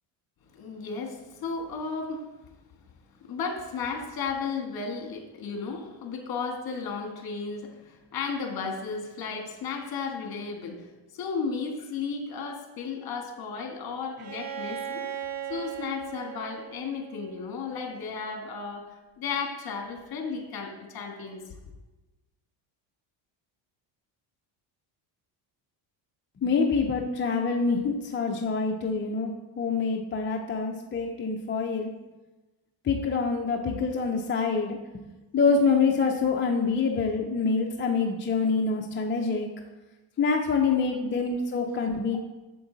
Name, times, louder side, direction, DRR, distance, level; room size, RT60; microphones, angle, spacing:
voice 1, 0.5-2.3 3.2-15.0 15.5-21.6 41.0-41.7 41.9-42.2, left 5 dB, 45° left, 3 dB, 1.7 m, -34 dB
Bowed string instrument, 14.2-18.0, right 10 dB, 45° right, 1.0 m, -38 dB
voice 2, 26.4-29.3 29.6-31.9 32.8-35.0 35.3-39.5 40.2-42.2, left 4 dB, 25° left, 1 dB, 0.5 m, -26 dB
8.4 x 7.1 x 3.9 m, 1.1 s
cardioid pair, 125°, 49 cm